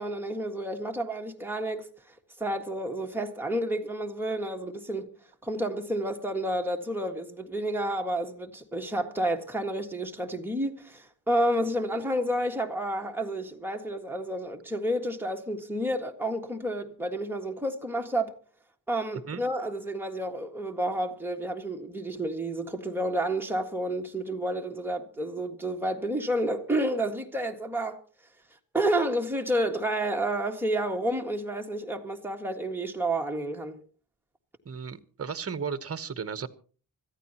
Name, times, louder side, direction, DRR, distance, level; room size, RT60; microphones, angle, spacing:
voice 1, 0.0-1.9 2.4-5.1 5.4-18.3 18.9-28.0 28.7-33.8, right 1 dB, 5° right, 1.7 m, -30 dB
voice 2, 34.6-36.5, right 6 dB, 35° right, 1.1 m, -34 dB
25.0 x 14.5 x 2.9 m
wide cardioid pair, 140°, 39 cm